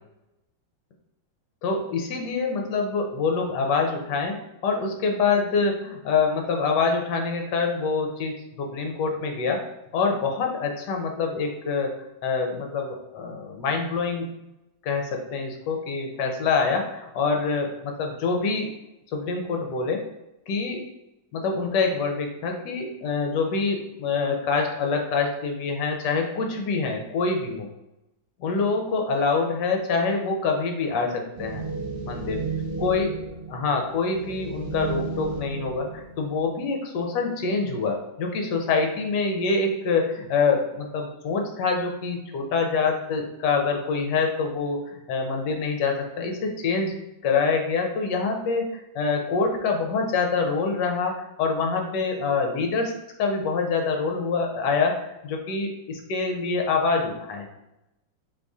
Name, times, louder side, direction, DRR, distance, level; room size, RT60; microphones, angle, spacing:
voice 1, 1.6-9.6 9.9-12.0 12.2-14.3 14.8-18.7 19.1-20.0 20.5-20.8 21.3-27.7 28.4-31.6 32.0-32.4 32.8-33.1 33.5-47.0 47.2-52.9 53.2-57.4, left 4 dB, 70° left, 3 dB, 1.3 m, -25 dB
sound 1, 31.4-36.5, right 4 dB, 45° right, 0.9 m, -33 dB
4.0 x 3.2 x 3.6 m, 0.91 s
omnidirectional pair, 2.1 m